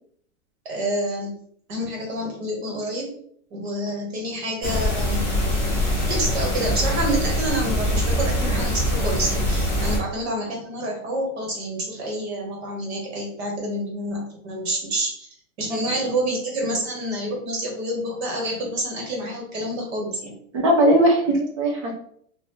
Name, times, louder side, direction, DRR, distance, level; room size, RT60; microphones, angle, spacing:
voice 1, 0.6-1.4 1.7-3.1 3.5-5.2 6.0-15.3 15.6-20.3, right 1 dB, 45° right, -1 dB, 1.4 m, -28 dB
sound 1, 4.6-10.0, left 1 dB, 5° left, 1.2 m, -23 dB
voice 2, 20.5-21.9, right 1 dB, 25° right, -1 dB, 0.5 m, -19 dB
4.0 x 2.5 x 3.1 m, 0.64 s
supercardioid pair, 170°, 43 cm